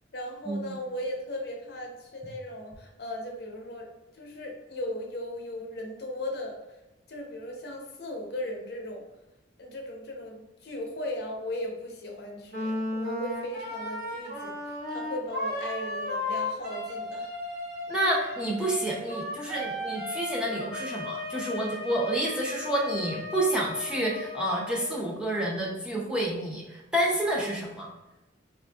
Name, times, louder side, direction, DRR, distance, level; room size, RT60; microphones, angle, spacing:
voice 1, 0.1-3.9 4.1-6.6 7.1-9.0 9.6-17.3, left 1 dB, 60° left, 1 dB, 0.6 m, -37 dB
Wind instrument woodwind instrument, 12.5-25.0, left 1 dB, 60° right, 1.0 m, -35 dB
voice 2, 17.9-27.9, right 1 dB, 5° right, -3 dB, 0.4 m, -29 dB
4.3 x 2.5 x 2.2 m, 1.0 s
head